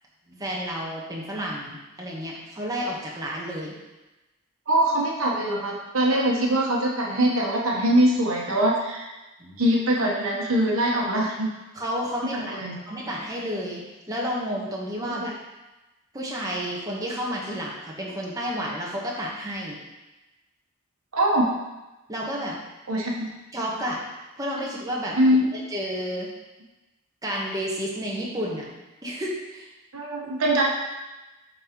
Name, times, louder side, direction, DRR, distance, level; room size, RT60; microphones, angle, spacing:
voice 1, 0.3-3.7 9.4-9.6 11.7-12.5 12.9-13.8 14.1-15.3 16.1-19.8 22.1-22.6 23.5-24.0 24.4-25.2 25.5-26.3 27.2-28.7 29.0-29.7, equal, 15° right, -4 dB, 1.1 m, -31 dB
voice 2, 4.7-9.0 9.6-11.5 12.3-12.8 21.1-21.5 22.9-23.3 25.2-25.5 29.9-30.6, right 1 dB, 70° right, -2 dB, 1.1 m, -22 dB
10.5 x 3.9 x 3.0 m, 1.1 s
head